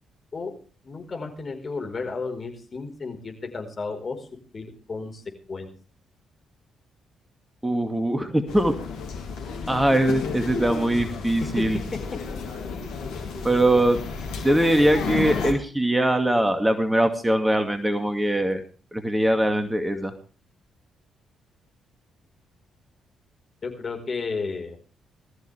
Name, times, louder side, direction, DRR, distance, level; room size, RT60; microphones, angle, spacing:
voice 1, 0.8-4.3 4.5-5.2 5.5-5.7 11.6-11.7 23.6-24.8, left 4 dB, 40° left, 3 dB, 4.8 m, -33 dB
voice 2, 7.6-8.7 9.7-11.8 13.4-14.0 14.4-18.6 18.9-20.1, right 1 dB, 10° right, 6 dB, 2.3 m, -22 dB
sound 1, 8.5-15.5, left 5 dB, 70° left, 3.2 m, -32 dB
20.0 x 14.0 x 3.5 m, 0.38 s
hypercardioid pair, 40°, 0 cm